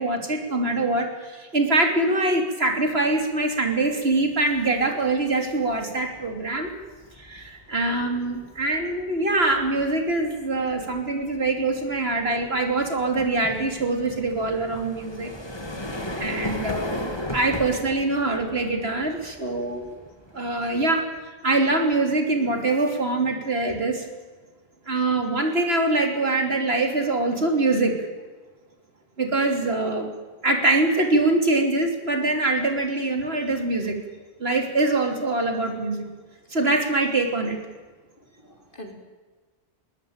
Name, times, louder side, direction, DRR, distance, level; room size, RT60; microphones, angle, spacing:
voice 1, 0.0-6.7 7.2-15.3 16.2-20.0 20.3-21.1 21.4-24.1 24.9-28.1 29.2-30.1 30.4-34.0 34.4-36.1 36.5-37.6, right 2 dB, 80° right, 4 dB, 3.4 m, -24 dB
sound 1, 3.8-4.1 4.5-21.2, left 1 dB, 25° left, 2.5 m, -38 dB
voice 2, 38.2-38.9, equal, 55° left, 3 dB, 3.7 m, -44 dB
21.5 x 19.0 x 8.9 m, 1.3 s
omnidirectional pair, 1.0 m